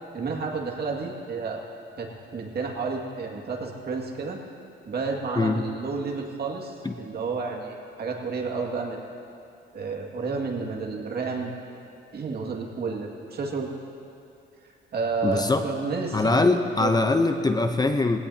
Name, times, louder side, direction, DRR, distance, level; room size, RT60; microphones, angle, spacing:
voice 1, 0.1-1.6 2.0-4.4 4.8-9.0 9.7-11.5 12.1-13.7 14.6-16.4 16.8-16.9, right 4 dB, 55° right, 0 dB, 2.2 m, -31 dB
voice 2, 15.2-15.6 16.1-18.2, left 3 dB, 20° left, 6 dB, 0.8 m, -22 dB
21.0 x 17.0 x 2.9 m, 2.5 s
cardioid pair, 90°, 20 cm